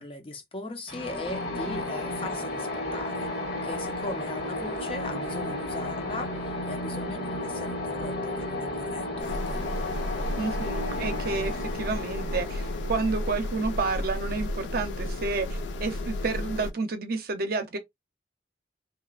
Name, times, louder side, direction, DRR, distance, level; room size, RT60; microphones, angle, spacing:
voice 1, 0.0-9.6, left 2 dB, 30° left, 0.5 m, -39 dB
sound 1, 0.9-14.5, left 1 dB, 65° left, 1.6 m, -33 dB
sound 2, 9.2-16.7, left 1 dB, 85° left, 0.4 m, -33 dB
voice 2, 10.4-17.8, right 3 dB, 55° right, 0.6 m, -30 dB
2.8 x 2.1 x 2.3 m
head